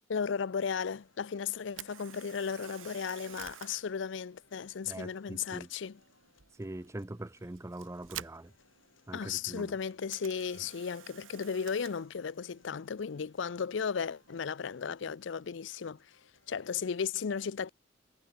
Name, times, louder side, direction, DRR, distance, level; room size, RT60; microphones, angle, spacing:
voice 1, 0.1-6.0 9.1-16.0 16.5-17.7, left 6 dB, 65° left, 0.5 m, -35 dB
sound 1, 0.6-16.6, left 4 dB, 90° left, 8.0 m, -69 dB
Camera, 1.7-15.7, right 11 dB, 85° right, 1.1 m, -52 dB
voice 2, 4.9-5.7 6.5-8.5 9.1-9.8, right 1 dB, 15° right, 0.6 m, -43 dB
head